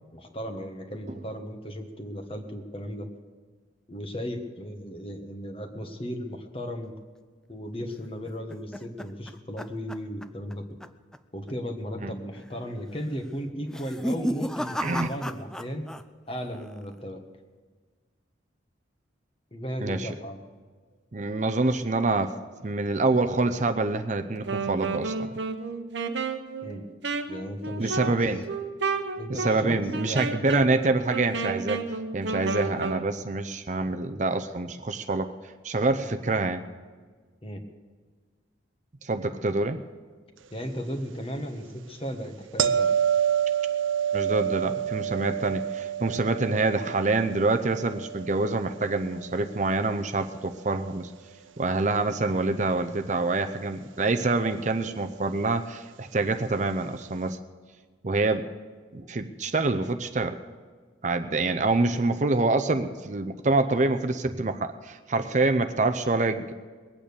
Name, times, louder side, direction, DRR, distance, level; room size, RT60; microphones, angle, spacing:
voice 1, 0.1-3.1 3.9-6.9 7.5-10.6 11.3-15.9 16.3-17.2 19.5-20.4 26.6-26.8 27.3-28.1 29.2-30.5 37.4-37.6 40.5-42.9, equal, 30° left, 5 dB, 1.3 m, -35 dB
sound 1, 8.0-10.5 10.8-11.2 11.5-11.6 12.3-12.7 13.6-16.0 16.3-16.9, equal, 5° left, 0.3 m, -34 dB
voice 2, 21.1-22.4 22.6-25.3 27.8-28.4 29.3-31.8 32.1-35.3 35.6-36.6 39.0-39.8 44.1-51.1 51.6-57.4 58.0-58.5 58.9-60.4 61.0-66.5, right 3 dB, 40° right, 7 dB, 0.6 m, -26 dB
Wind instrument woodwind instrument, 24.4-33.1, right 4 dB, 65° right, 1.0 m, -32 dB
sound 2, 42.6-49.6 54.8-55.0, right 9 dB, 85° right, 0.6 m, -28 dB
21.0 x 8.8 x 6.9 m, 1.5 s
head